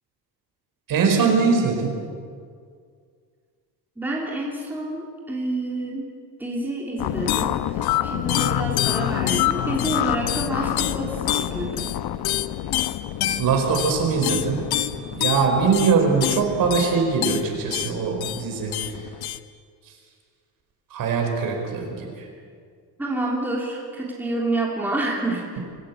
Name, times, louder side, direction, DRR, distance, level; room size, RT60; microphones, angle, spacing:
voice 1, 0.9-1.9 13.4-14.6 15.1-19.0 20.9-22.3, right 5 dB, 60° right, 2 dB, 4.9 m, -22 dB
voice 2, 4.0-6.1 6.4-11.9 23.0-25.6, right 2 dB, 5° right, -3 dB, 3.2 m, -28 dB
sound 1, 7.0-19.4, left 13 dB, 70° left, 0.9 m, -26 dB
25.0 x 15.5 x 8.5 m, 2.1 s
cardioid pair, 160°, 39 cm